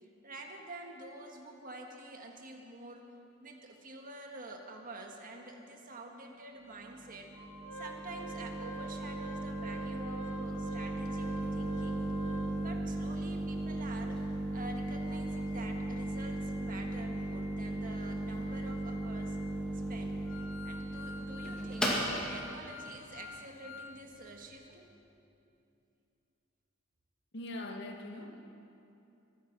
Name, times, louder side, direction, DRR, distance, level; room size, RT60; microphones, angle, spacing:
voice 1, 0.2-3.1 3.4-7.3 7.7-14.2 14.5-19.4 19.9-20.2 20.6-22.0 22.3-24.8, right 2 dB, 40° right, 2 dB, 1.6 m, -48 dB
sound 1, 6.7-24.3, right 1 dB, 5° left, 2.4 m, -37 dB
Organ, 7.3-12.9 13.4-13.5 13.8-13.9 14.4-24.0 24.3-24.4, right 1 dB, 85° left, 2.1 m, -48 dB
voice 2, 27.3-28.4, left 1 dB, 55° left, 2 dB, 1.7 m, -42 dB
23.0 x 9.8 x 6.1 m, 2.7 s
head